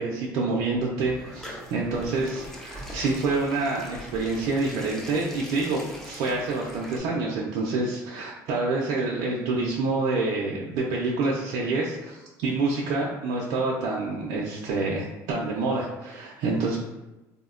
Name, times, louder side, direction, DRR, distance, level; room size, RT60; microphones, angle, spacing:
voice 1, 0.0-16.8, right 3 dB, 65° right, -3 dB, 0.4 m, -27 dB
sound 1, 0.7-7.0, equal, 5° left, 0.3 m, -42 dB
3.4 x 2.1 x 2.3 m, 1.0 s
cardioid pair, 160°, 7 cm